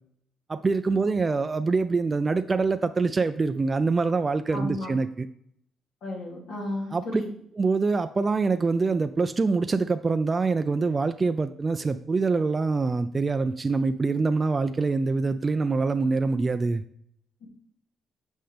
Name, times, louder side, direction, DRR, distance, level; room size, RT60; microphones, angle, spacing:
voice 1, 0.5-5.3 6.9-7.2 7.5-16.8, right 4 dB, 30° right, 8 dB, 0.3 m, -25 dB
voice 2, 4.5-4.9 6.0-7.3 17.4-17.5, left 1 dB, 75° left, -2 dB, 2.7 m, -34 dB
7.6 x 5.3 x 3.4 m, 0.68 s
cardioid pair, 90°, 0 cm